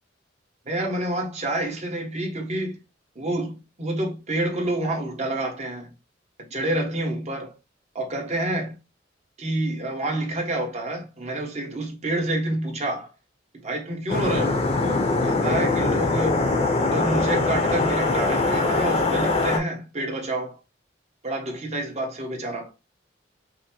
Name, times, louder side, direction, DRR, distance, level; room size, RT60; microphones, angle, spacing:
voice 1, 0.6-2.8 3.1-5.9 6.4-7.5 7.9-8.7 9.4-13.1 13.5-14.5 14.8-16.4 16.8-20.6 21.2-22.7, right 1 dB, 35° right, 1.1 m, -28 dB
sound 1, 14.1-19.6, left 3 dB, 35° left, 0.7 m, -22 dB
5.2 x 2.1 x 2.9 m
head